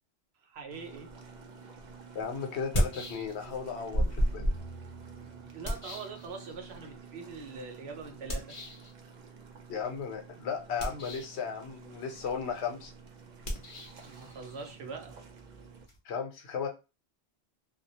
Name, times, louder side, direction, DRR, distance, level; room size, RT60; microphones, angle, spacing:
voice 1, 0.4-1.1 5.2-8.6 14.0-15.2, right 4 dB, 75° right, 0.9 m, -43 dB
sound 1, 0.7-15.9, right 5 dB, 55° right, 0.6 m, -51 dB
sound 2, 1.6-1.7 2.5-3.6 3.9-6.8 8.3-8.9 10.7-11.4 13.4-16.0, equal, 40° left, 0.6 m, -34 dB
voice 2, 2.1-4.4 9.7-12.9 16.0-16.7, left 6 dB, 90° left, 1.0 m, -35 dB
2.3 x 2.0 x 2.7 m
omnidirectional pair, 1.1 m